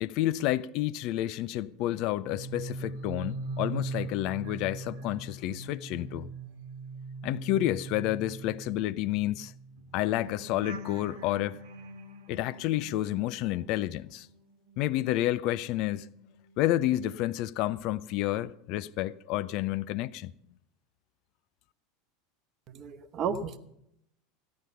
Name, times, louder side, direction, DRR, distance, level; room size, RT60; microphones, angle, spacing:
voice 1, 0.0-6.3 7.2-9.5 9.9-11.6 12.3-14.3 14.8-16.1 16.6-20.3, left 14 dB, 50° left, 0.4 m, -30 dB
sound 1, 2.1-14.4 14.7-16.8 17.1-17.4, right 3 dB, 60° right, 1.2 m, -42 dB
voice 2, 22.7-23.6, right 6 dB, 40° right, 1.0 m, -33 dB
15.0 x 10.5 x 5.6 m
figure-of-eight pair, 80°, 0 cm